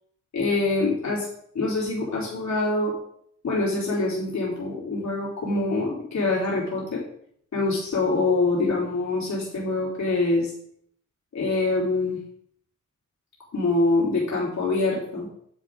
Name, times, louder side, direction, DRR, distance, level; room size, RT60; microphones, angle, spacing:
voice 1, 0.3-1.3 1.5-2.9 3.4-7.0 7.5-10.5 11.3-12.2 13.5-15.3, left 2 dB, 70° left, -6 dB, 3.5 m, -25 dB
10.0 x 8.4 x 3.7 m, 0.67 s
cardioid pair, 75°, 30 cm